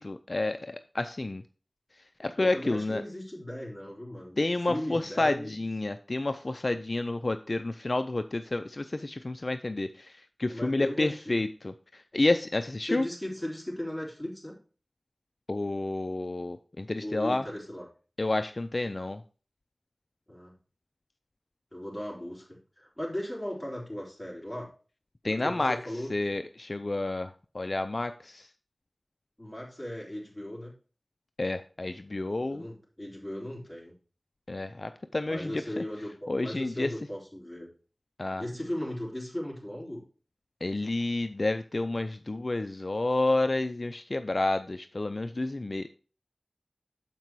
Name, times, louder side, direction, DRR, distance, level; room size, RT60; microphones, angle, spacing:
voice 1, 0.0-1.4 2.2-3.0 4.4-11.7 12.1-13.1 15.5-17.4 18.2-19.2 25.2-25.8 26.1-28.5 31.4-32.6 34.5-35.8 36.3-36.9 38.2-38.4 40.6-45.9, left 2 dB, 55° left, 9 dB, 0.4 m, -30 dB
voice 2, 2.4-4.4 4.7-5.7 10.5-11.4 12.8-14.6 17.0-17.9 20.3-20.5 21.7-24.7 25.2-26.1 29.4-30.7 32.5-33.9 35.2-37.7 38.4-40.0, left 1 dB, 10° left, -4 dB, 4.0 m, -37 dB
7.5 x 5.4 x 4.6 m, 0.37 s
wide cardioid pair, 45°, 0 cm